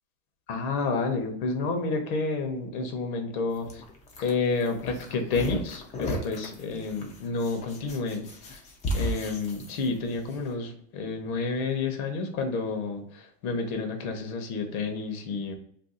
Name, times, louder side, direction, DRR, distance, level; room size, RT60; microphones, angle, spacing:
voice 1, 0.5-3.8 4.2-8.2 8.5-8.6 8.9-15.5, left 3 dB, 80° left, 5 dB, 0.9 m, -30 dB
sound 1, 3.5-10.4, equal, 20° left, 0.3 m, -35 dB
2.6 x 2.3 x 3.8 m, 0.64 s
supercardioid pair, 130°, 42 cm